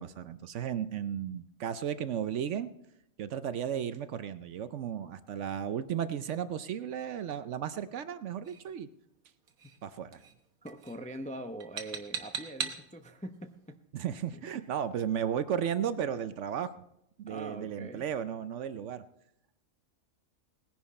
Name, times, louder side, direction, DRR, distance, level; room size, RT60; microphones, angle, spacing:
voice 1, 0.0-2.7 3.2-8.9 9.8-10.2 13.9-16.7 17.2-19.0, right 9 dB, 65° right, 13 dB, 0.9 m, -34 dB
sound 1, 8.4-8.7 9.5-9.8 10.1-10.4 10.7-11.0 11.6-12.9, right 6 dB, 90° right, 1.7 m, -39 dB
voice 2, 10.6-13.8 14.3-14.7 17.3-18.0, right 1 dB, 10° left, 7 dB, 0.4 m, -43 dB
19.0 x 10.5 x 4.2 m, 0.83 s
omnidirectional pair, 1.5 m